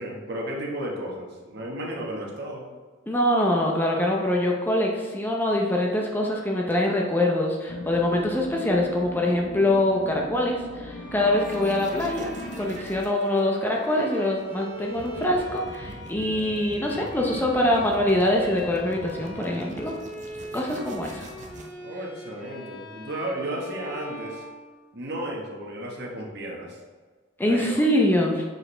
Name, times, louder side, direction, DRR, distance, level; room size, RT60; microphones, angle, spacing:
voice 1, 0.0-2.7 21.8-24.4 24.9-26.8 27.5-27.9, right 1 dB, 55° right, -1 dB, 1.2 m, -33 dB
voice 2, 3.1-12.3 12.6-19.9 20.5-21.3 27.4-28.4, left 1 dB, 10° left, -1 dB, 0.6 m, -24 dB
sound 1, 7.7-13.0, left 1 dB, 90° left, 0.6 m, -39 dB
Bowed string instrument, 10.9-25.2, equal, 25° left, 1.7 m, -42 dB
sound 2, 11.4-21.7, right 2 dB, 40° right, 0.6 m, -44 dB
6.4 x 4.8 x 3.2 m, 1.4 s
head